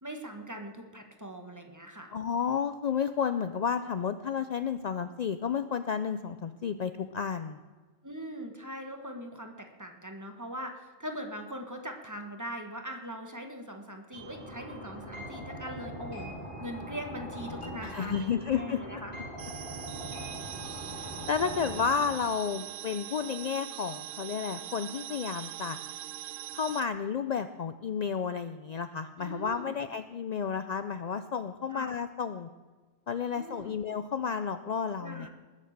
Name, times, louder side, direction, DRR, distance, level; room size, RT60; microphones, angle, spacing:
voice 1, 0.0-2.1 8.0-16.3 16.6-19.1 29.2-29.8 31.7-31.9 33.3-33.7 35.0-35.3, equal, 15° right, 4 dB, 1.3 m, -41 dB
voice 2, 2.1-7.6 17.8-18.8 21.0-25.8 26.5-32.5 33.1-35.3, left 6 dB, 65° left, 10 dB, 0.4 m, -32 dB
sound 1, 14.1-22.1, equal, 25° left, 6.1 m, -41 dB
sound 2, 19.4-26.8, right 13 dB, 85° right, 1.0 m, -42 dB
20.0 x 7.3 x 6.6 m, 1.4 s
omnidirectional pair, 1.3 m